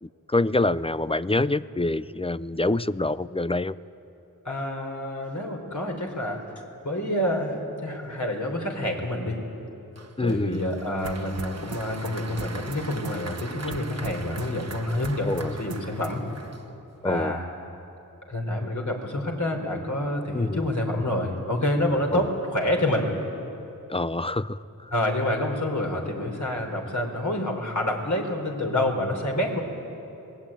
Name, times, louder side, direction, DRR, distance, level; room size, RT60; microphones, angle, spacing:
voice 1, 0.0-3.8 10.2-10.6 15.2-15.6 17.0-17.4 20.3-20.7 22.1-22.2 23.9-24.9, left 2 dB, 15° left, 16 dB, 0.5 m, -26 dB
voice 2, 4.4-6.5 6.8-9.4 10.2-16.2 17.0-17.4 18.3-23.1 24.9-29.6, left 1 dB, 55° left, 1 dB, 4.2 m, -27 dB
Applause, 10.0-17.1, right 3 dB, 45° right, 1.4 m, -42 dB
sound 1, 11.0-16.4, right 5 dB, 85° right, 1.1 m, -41 dB
27.0 x 20.0 x 9.0 m, 3.0 s
wide cardioid pair, 55°, 35 cm